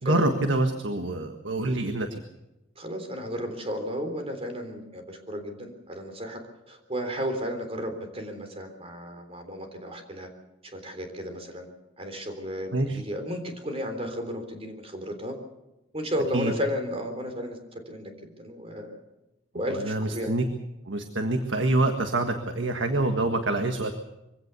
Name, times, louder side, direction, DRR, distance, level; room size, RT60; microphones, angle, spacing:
voice 1, 0.0-2.2 12.7-13.0 16.3-16.5 19.8-20.4 20.9-23.9, right 2 dB, 75° right, 6 dB, 1.6 m, -26 dB
voice 2, 2.8-6.4 6.7-10.3 10.7-11.7 12.0-15.3 15.9-19.0 19.5-20.4, equal, 30° right, 5 dB, 3.6 m, -33 dB
23.5 x 16.5 x 7.0 m, 0.95 s
head